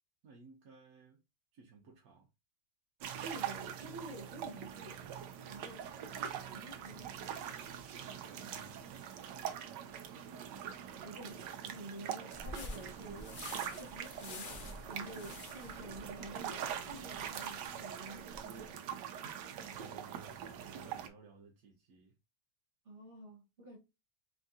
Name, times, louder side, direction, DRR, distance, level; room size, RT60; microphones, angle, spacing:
voice 1, 0.2-1.2 1.5-2.3 8.4-9.1 11.3-11.5 19.6-22.2, right 4 dB, 65° right, 1.2 m, -57 dB
sound 1, 3.0-21.1, right 9 dB, 85° right, 1.2 m, -43 dB
voice 2, 3.2-5.1 5.5-7.1 10.5-10.7 11.0-13.2 13.7-14.5 14.9-18.4 22.8-23.8, right 1 dB, 45° right, 1.7 m, -49 dB
sound 2, 12.3-18.7, left 2 dB, 45° left, 0.7 m, -49 dB
4.3 x 3.6 x 2.7 m
omnidirectional pair, 1.8 m